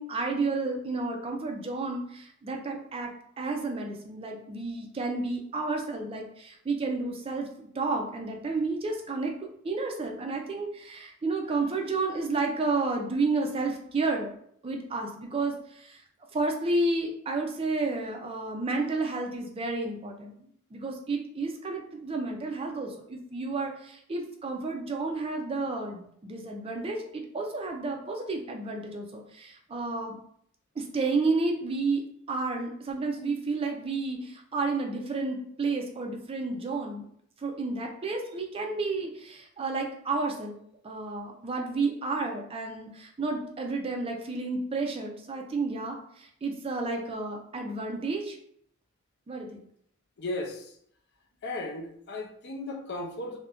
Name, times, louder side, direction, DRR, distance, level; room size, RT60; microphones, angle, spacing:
voice 1, 0.0-3.1 3.4-9.3 9.6-14.3 14.6-16.0 16.3-20.4 20.7-30.2 30.8-32.0 32.3-37.0 37.4-40.6 40.8-48.4 49.3-49.6, right 3 dB, 25° right, 3 dB, 0.4 m, -31 dB
voice 2, 50.2-50.7 51.4-53.4, left 2 dB, 55° left, 2 dB, 0.5 m, -35 dB
2.4 x 2.1 x 3.5 m, 0.67 s
head